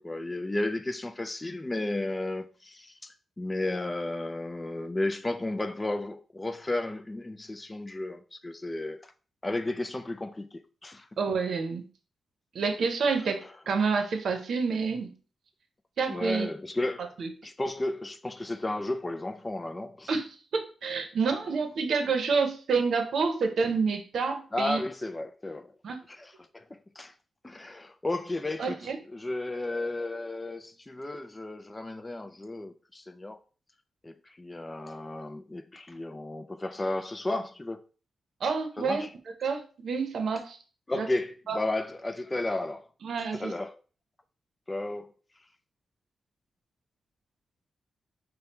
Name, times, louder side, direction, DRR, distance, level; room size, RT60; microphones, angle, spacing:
voice 1, 0.0-9.1 9.4-11.1 13.2-13.3 16.1-17.1 17.4-20.2 24.5-25.7 26.1-27.1 27.4-33.4 34.0-37.8 38.8-39.1 40.9-42.9 43.2-43.8 44.7-45.1, left 2 dB, 15° left, 0.4 m, -33 dB
voice 2, 11.2-11.9 12.5-15.1 16.0-16.5 17.2-17.3 20.1-24.8 25.8-26.0 28.6-29.0 38.4-39.0 39.4-40.6 40.9-41.1 41.5-41.6 43.0-43.5, right 5 dB, 70° right, 0.8 m, -28 dB
5.3 x 2.2 x 4.2 m
wide cardioid pair, 125°, 0 cm